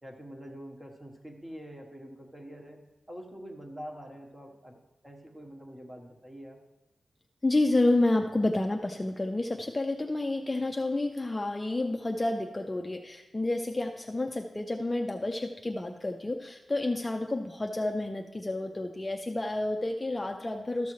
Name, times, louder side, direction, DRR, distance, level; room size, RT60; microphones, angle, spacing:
voice 1, 0.0-2.8 3.1-6.6, equal, 15° right, 2 dB, 1.2 m, -45 dB
voice 2, 7.4-20.9, left 2 dB, 20° left, 2 dB, 0.4 m, -29 dB
13.0 x 7.0 x 3.1 m, 1.0 s
wide cardioid pair, 135°, 0 cm